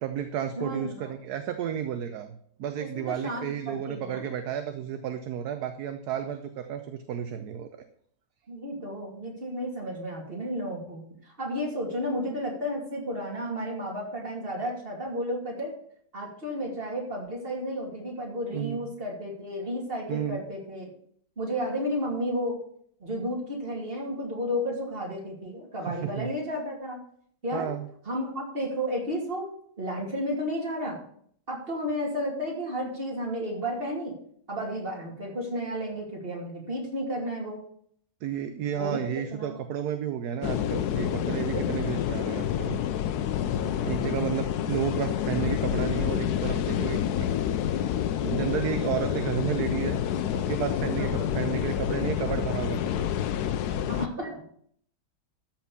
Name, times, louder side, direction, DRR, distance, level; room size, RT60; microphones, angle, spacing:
voice 1, 0.0-7.9 18.5-18.8 20.1-20.4 25.9-26.3 27.5-27.9 38.2-42.8 43.8-47.3 48.2-50.0 50.3-53.3, right 9 dB, 70° right, 8 dB, 1.2 m, -32 dB
voice 2, 0.6-1.1 2.9-4.2 8.5-15.7 16.1-20.9 21.4-22.6 23.0-27.0 27.4-27.8 28.0-29.5 29.8-31.0 31.5-34.1 34.5-37.6 38.7-39.0 39.3-39.6 41.2-41.7 51.0-51.3 53.9-54.4, equal, 30° right, -1 dB, 2.9 m, -32 dB
sound 1, 40.4-54.1, left 10 dB, 70° left, 1.1 m, -28 dB
13.0 x 4.5 x 7.0 m, 0.63 s
omnidirectional pair, 1.9 m